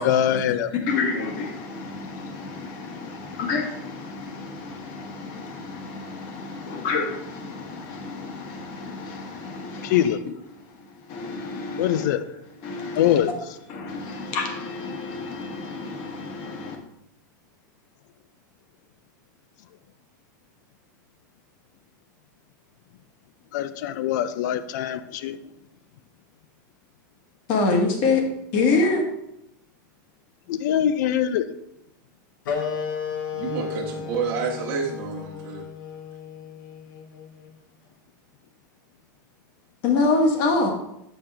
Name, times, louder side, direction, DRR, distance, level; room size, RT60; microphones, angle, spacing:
voice 1, 0.0-0.7 9.8-10.2 11.8-12.2 13.0-13.3 23.5-25.4 30.5-31.4, left 10 dB, 60° left, 13 dB, 0.4 m, -23 dB
voice 2, 0.7-10.1 11.1-12.1 12.6-13.2 13.7-16.8 27.5-28.2 28.5-29.0 39.8-40.7, left 3 dB, 45° left, 2 dB, 1.3 m, -27 dB
sound 1, 32.4-37.6, left 7 dB, 85° left, 1.1 m, -33 dB
voice 3, 33.3-35.7, right 5 dB, 45° right, -3 dB, 1.2 m, -29 dB
7.3 x 5.3 x 3.4 m, 0.81 s
supercardioid pair, 160°, 11 cm